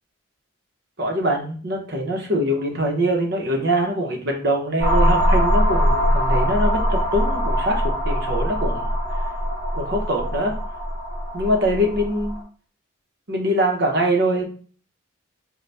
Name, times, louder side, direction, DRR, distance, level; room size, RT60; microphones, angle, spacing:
voice 1, 1.0-8.9 9.7-10.5 11.3-12.4 13.3-14.4, equal, 50° right, 1 dB, 0.8 m, -23 dB
sound 1, 4.8-12.4, equal, 25° left, 1.6 m, -22 dB
4.0 x 2.2 x 3.3 m, 0.42 s
head